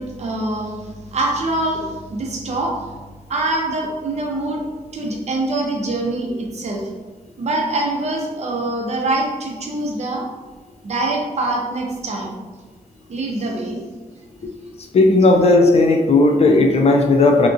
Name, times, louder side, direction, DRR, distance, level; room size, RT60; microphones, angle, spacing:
voice 1, 0.0-3.0 3.3-4.7 4.9-6.8 7.4-10.3 10.8-12.4 13.1-13.8, right 2 dB, 50° right, 0 dB, 0.5 m, -24 dB
voice 2, 14.9-17.5, left 2 dB, 50° left, 3 dB, 0.4 m, -14 dB
2.8 x 2.4 x 2.5 m, 1.3 s
wide cardioid pair, 130°, 14 cm